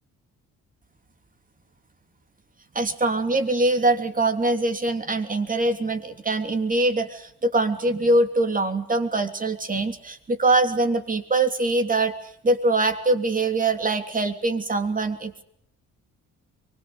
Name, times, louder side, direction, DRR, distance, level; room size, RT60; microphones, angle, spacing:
voice 1, 2.7-15.4, right 2 dB, 25° right, 7 dB, 3.1 m, -23 dB
24.0 x 21.5 x 8.0 m, 0.72 s
cardioid pair, 90°, 30 cm